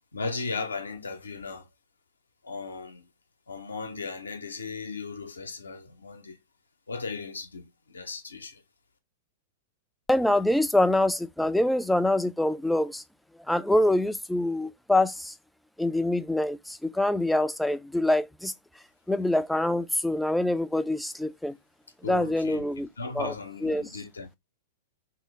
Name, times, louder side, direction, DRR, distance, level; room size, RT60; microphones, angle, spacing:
voice 1, 0.1-1.7 2.4-3.0 3.5-6.4 6.9-8.6 22.0-24.3, left 4 dB, 85° left, 0.7 m, -36 dB
voice 2, 10.1-13.0 13.5-15.3 15.8-18.5 19.1-21.6 22.1-22.9 23.1-23.3 23.6-23.9, left 1 dB, 5° left, 0.3 m, -25 dB
3.2 x 2.7 x 3.1 m
hypercardioid pair, 105°, 0 cm